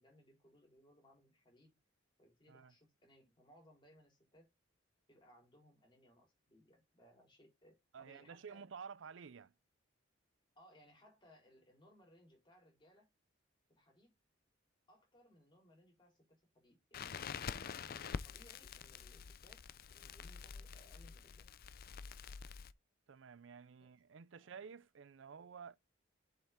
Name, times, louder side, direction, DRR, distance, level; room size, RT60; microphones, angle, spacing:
voice 1, 0.0-1.8 2.2-4.5 5.1-8.6 10.6-13.1 13.7-14.1 14.9-17.2 17.6-19.6 19.9-21.5 23.8-23.9 24.3-24.6, equal, 25° left, 4.0 m, -66 dB
voice 2, 7.9-9.5 23.1-25.8, right 6 dB, 70° right, 0.5 m, -52 dB
Crackle, 16.9-22.7, left 6 dB, 50° left, 0.4 m, -47 dB
7.4 x 5.8 x 3.6 m
head